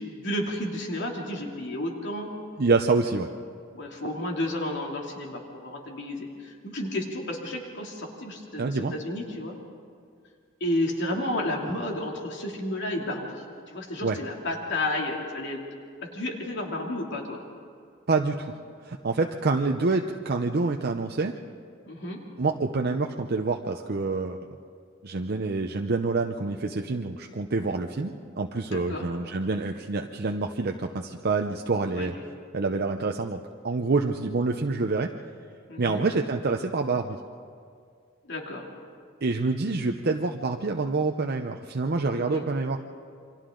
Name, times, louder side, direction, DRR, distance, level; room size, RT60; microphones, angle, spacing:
voice 1, 0.0-2.3 3.7-9.6 10.6-15.6 16.1-17.4 21.8-22.2 28.7-29.1 31.9-32.1 35.7-36.0 38.2-38.7 42.1-42.5, left 1 dB, 60° left, 0 dB, 2.8 m, -32 dB
voice 2, 2.6-3.3 8.6-8.9 14.0-14.2 18.1-18.5 18.8-21.3 22.4-24.4 25.0-32.1 32.5-35.1 35.8-37.2 39.2-42.8, right 3 dB, 50° right, 3 dB, 0.7 m, -27 dB
28.5 x 24.0 x 3.9 m, 2.2 s
head